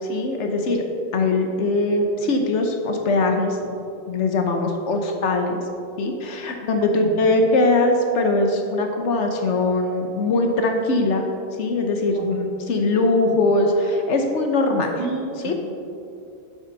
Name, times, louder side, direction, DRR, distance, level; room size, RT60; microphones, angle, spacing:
voice 1, 0.0-0.8 1.1-3.8 4.1-5.7 6.0-11.3 11.6-14.9 15.4-15.5, left 2 dB, 60° left, 3 dB, 0.7 m, -21 dB
voice 2, 12.1-12.5 15.0-15.5, right 4 dB, 65° right, -1 dB, 2.1 m, -32 dB
10.0 x 7.6 x 3.9 m, 2.7 s
omnidirectional pair, 2.2 m